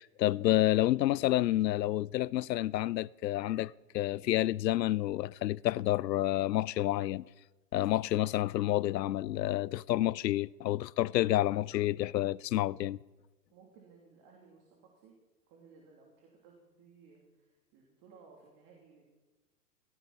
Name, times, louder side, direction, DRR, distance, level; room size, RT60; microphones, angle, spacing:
voice 1, 0.0-7.2 7.7-13.0, left 14 dB, 75° left, 0.6 m, -29 dB
voice 2, 13.5-15.1 15.5-19.0, right 5 dB, 40° right, 3.3 m, -59 dB
17.0 x 16.0 x 4.3 m
hypercardioid pair, 115°, 50 cm